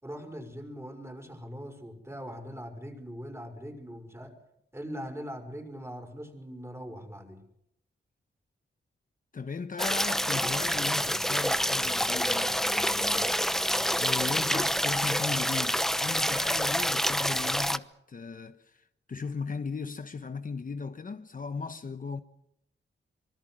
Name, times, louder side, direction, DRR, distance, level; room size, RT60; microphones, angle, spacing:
voice 1, 0.0-4.3 4.7-7.4, equal, 15° right, 5.8 m, -41 dB
voice 2, 9.3-13.7 14.0-22.2, left 5 dB, 45° left, 1.1 m, -37 dB
sound 1, 9.8-17.8, equal, ahead, 0.9 m, -27 dB
25.5 x 24.0 x 6.4 m
wide cardioid pair, 100°, 20 cm